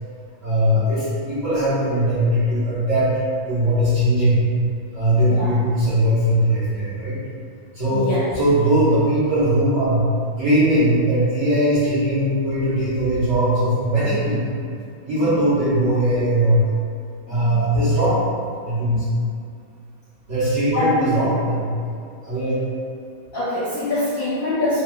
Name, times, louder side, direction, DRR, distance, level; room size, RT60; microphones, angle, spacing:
voice 1, 0.4-4.4 4.9-7.2 7.7-10.1 10.4-14.5 15.0-16.6 17.3-18.2 18.6-19.0 20.3-21.7 22.2-22.6, right 1 dB, 65° right, -13 dB, 0.8 m, -20 dB
voice 2, 7.9-8.3 15.1-15.3 17.3-17.7 20.7-21.2 23.3-24.8, left 2 dB, 80° left, -10 dB, 0.7 m, -24 dB
3.5 x 2.7 x 2.2 m, 2.4 s
omnidirectional pair, 2.2 m